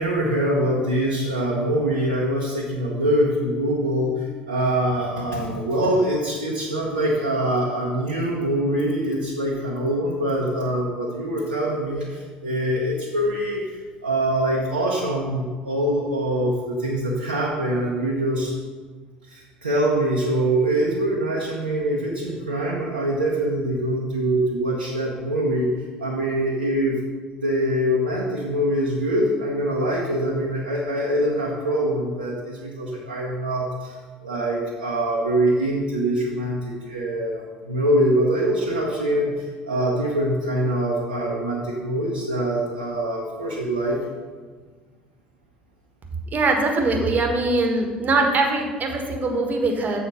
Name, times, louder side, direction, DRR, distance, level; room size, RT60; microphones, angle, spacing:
voice 1, 0.0-18.5 19.3-25.7 26.0-27.0 27.4-33.9 34.2-44.0, right 1 dB, 85° right, -3 dB, 0.9 m, -24 dB
voice 2, 46.3-50.0, right 2 dB, 35° right, 3 dB, 1.4 m, -22 dB
7.0 x 4.4 x 6.2 m, 1.5 s
figure-of-eight pair, 60°, 5 cm